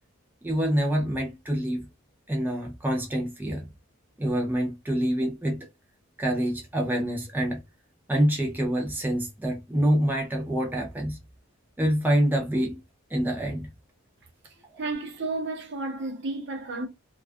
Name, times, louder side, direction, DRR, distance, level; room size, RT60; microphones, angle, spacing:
voice 1, 0.4-1.9 2.3-3.7 4.2-5.7 6.2-7.6 8.1-11.2 11.8-12.8 13.1-13.7, right 1 dB, 10° right, 0.4 m, -26 dB
voice 2, 14.4-16.9, right 3 dB, 50° right, 0.6 m, -32 dB
2.3 x 2.3 x 2.4 m
head